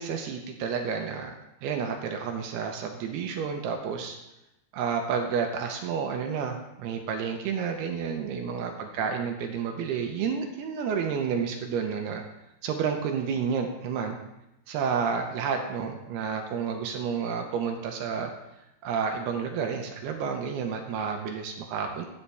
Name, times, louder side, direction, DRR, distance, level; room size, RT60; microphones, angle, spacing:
voice 1, 0.0-1.3 1.6-4.2 4.7-12.2 12.6-14.2 14.7-18.3 18.8-22.1, right 6 dB, 75° right, 4 dB, 2.7 m, -30 dB
12.5 x 9.5 x 3.4 m, 0.92 s
omnidirectional pair, 5.0 m